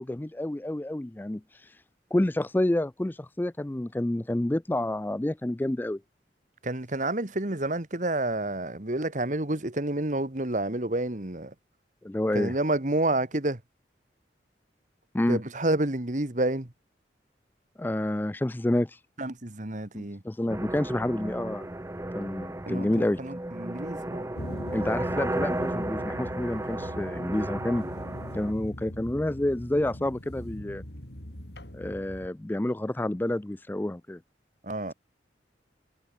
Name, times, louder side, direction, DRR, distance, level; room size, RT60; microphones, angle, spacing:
voice 1, 0.0-1.7 2.1-6.0 12.0-12.5 15.1-15.4 17.8-19.0 19.9-21.7 22.2-23.2 24.7-27.8 28.3-30.8 31.7-34.2, left 1 dB, 10° left, 0.3 m, -29 dB
voice 2, 6.6-11.5 12.3-13.6 15.3-16.7 19.2-20.2 22.7-24.3 34.6-34.9, right 2 dB, 45° right, 1.7 m, -29 dB
sound 1, 20.5-28.5, right 1 dB, 15° right, 0.7 m, -34 dB
sound 2, 24.4-32.3, equal, 70° left, 4.6 m, -41 dB
head